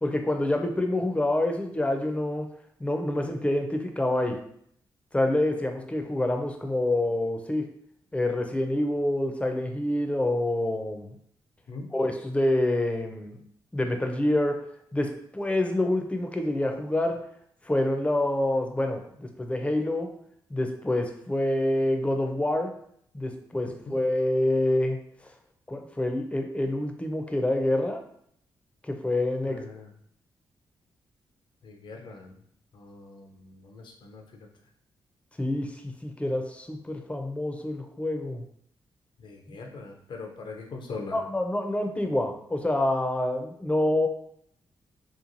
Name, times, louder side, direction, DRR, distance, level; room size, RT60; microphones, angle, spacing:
voice 1, 0.0-2.5 2.8-4.4 5.1-7.7 8.1-11.1 11.9-13.4 13.7-14.6 14.9-17.2 17.6-20.1 20.5-22.7 23.1-25.0 25.7-28.0 28.9-29.6 35.4-38.4 41.1-44.1, left 1 dB, 15° left, 4 dB, 0.5 m, -27 dB
voice 2, 29.5-29.9 31.6-32.4 32.7-34.5 39.2-41.2, left 3 dB, 65° left, 2 dB, 0.6 m, -42 dB
3.0 x 2.2 x 2.5 m, 0.68 s
cardioid pair, 55°, 9 cm